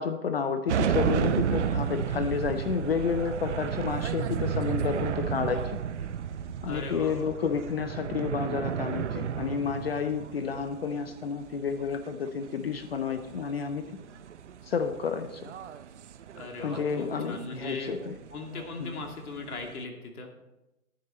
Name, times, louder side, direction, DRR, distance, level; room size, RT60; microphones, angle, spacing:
voice 1, 0.0-5.8 6.6-13.8 14.7-15.5 16.6-18.1 18.8-18.9, left 6 dB, 45° left, 9 dB, 0.6 m, -30 dB
sound 1, 0.7-19.8, right 8 dB, 55° right, 0.6 m, -33 dB
voice 2, 6.7-7.4 16.4-17.9 18.3-20.3, left 3 dB, 80° left, 2 dB, 2.5 m, -39 dB
10.5 x 10.0 x 4.2 m, 0.96 s
hypercardioid pair, 160°, 44 cm